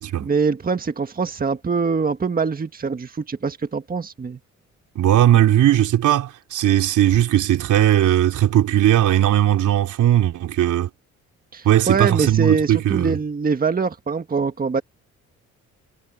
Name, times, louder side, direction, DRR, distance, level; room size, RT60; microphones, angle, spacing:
voice 1, 0.2-4.4 11.5-14.8, right 5 dB, 30° right, 1.7 m, -23 dB
voice 2, 5.0-10.9 11.7-13.2, right 12 dB, 80° right, 3.4 m, -18 dB
cardioid pair, 90°, 30 cm